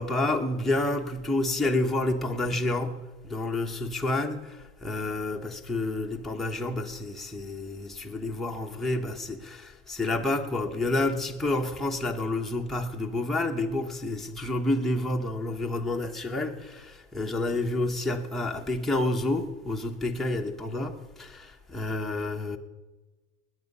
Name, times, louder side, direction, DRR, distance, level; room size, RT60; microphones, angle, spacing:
voice 1, 0.0-22.6, left 2 dB, ahead, 1.2 m, -29 dB
20.0 x 8.8 x 5.5 m
supercardioid pair, 120°, 35 cm